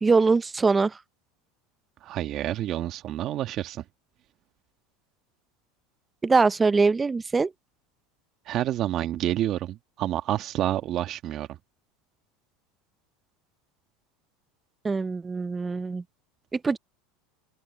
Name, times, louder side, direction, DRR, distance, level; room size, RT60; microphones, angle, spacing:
voice 1, 0.0-0.9 6.2-7.5 14.8-16.0 16.5-16.8, right 4 dB, 15° right, 0.7 m, -22 dB
voice 2, 2.0-3.8 8.4-11.6, right 13 dB, 45° right, 1.5 m, -28 dB
supercardioid pair, 115°, 0 cm